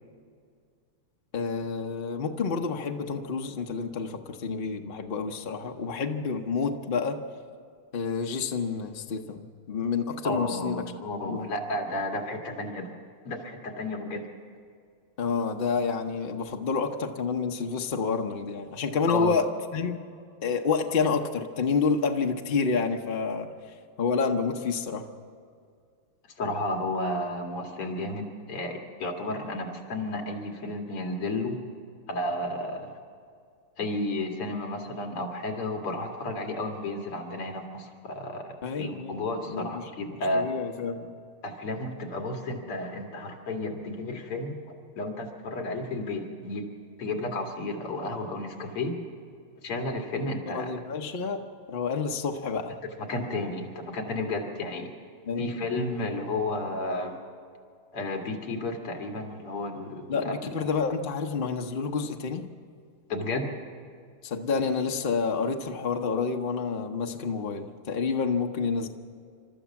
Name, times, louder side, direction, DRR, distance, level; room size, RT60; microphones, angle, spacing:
voice 1, 1.3-7.2 7.9-10.9 11.2-11.5 15.2-20.0 20.4-23.5 24.0-25.1 38.6-39.2 39.5-39.9 40.3-41.1 50.5-52.8 55.3-55.5 60.1-62.5 64.2-68.9, left 5 dB, 50° left, 3 dB, 0.6 m, -29 dB
voice 2, 10.2-12.9 13.2-14.2 19.1-19.4 26.4-31.6 32.1-33.0 33.8-40.5 41.4-44.6 45.0-46.7 47.0-48.9 49.6-50.7 53.0-54.9 55.4-57.2 57.9-60.5 63.1-63.5, left 2 dB, 90° left, 2 dB, 3.0 m, -32 dB
28.5 x 13.0 x 7.1 m, 2.2 s
omnidirectional pair, 2.4 m